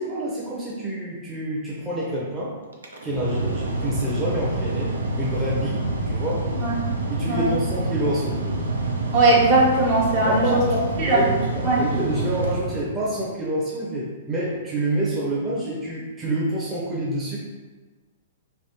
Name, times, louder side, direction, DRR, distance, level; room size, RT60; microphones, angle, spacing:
voice 1, 0.0-2.6 3.0-6.5 7.1-8.6 10.2-17.4, right 1 dB, 15° right, -6 dB, 0.7 m, -27 dB
Mechanical fan, 2.7-13.3, right 2 dB, 85° right, 0.5 m, -27 dB
voice 2, 6.6-6.9 7.3-7.5 9.1-10.6 11.0-11.2 11.6-11.8, right 2 dB, 50° right, -4 dB, 1.0 m, -19 dB
3.3 x 2.5 x 2.9 m, 1.3 s
hypercardioid pair, 115°, 0 cm